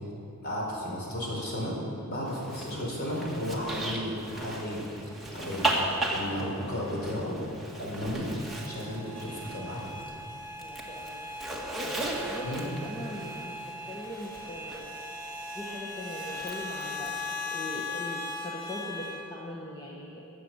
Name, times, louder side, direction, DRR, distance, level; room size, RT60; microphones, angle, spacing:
voice 1, 0.4-7.4 7.8-8.4 8.6-9.9 12.4-12.7, equal, 45° left, -4 dB, 4.1 m, -34 dB
Zipper (clothing), 2.3-10.1 10.4-14.8 16.3-17.1, right 1 dB, ahead, 1.6 m, -36 dB
sound 1, 8.4-19.2, left 2 dB, 25° right, 3.3 m, -39 dB
voice 2, 10.6-11.3 12.3-15.0 15.5-20.2, left 1 dB, 20° left, -4 dB, 1.2 m, -40 dB
21.5 x 7.7 x 7.2 m, 2.8 s
head